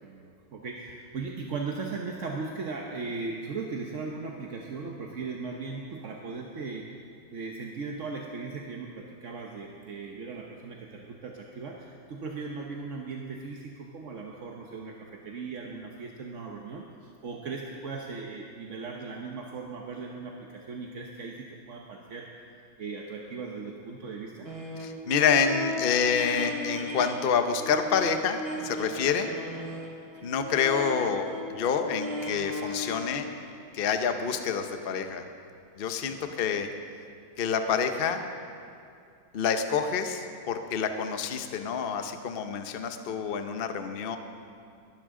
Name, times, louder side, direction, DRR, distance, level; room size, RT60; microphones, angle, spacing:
voice 1, 0.0-6.9 7.3-22.3 22.8-24.5 30.2-30.3 36.1-36.4, right 4 dB, 50° right, 0 dB, 1.0 m, -38 dB
sound 1, 24.4-27.2 27.5-33.6, left 1 dB, 35° right, 1.4 m, -37 dB
voice 2, 24.8-29.3 30.2-33.3 33.7-35.3 35.8-36.7 37.4-38.2 39.3-44.2, left 6 dB, 80° left, 7 dB, 0.5 m, -27 dB
21.5 x 12.0 x 3.8 m, 2.4 s
omnidirectional pair, 2.2 m